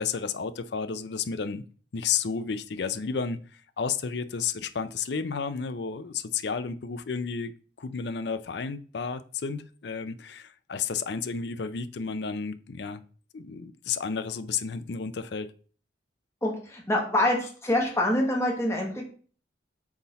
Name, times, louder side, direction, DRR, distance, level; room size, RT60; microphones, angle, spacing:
voice 1, 0.0-1.6 1.9-7.5 7.8-13.0 13.3-15.5, left 6 dB, 60° left, 0.5 m, -32 dB
voice 2, 16.4-19.0, left 1 dB, 15° left, 1.3 m, -26 dB
5.9 x 4.1 x 4.1 m
head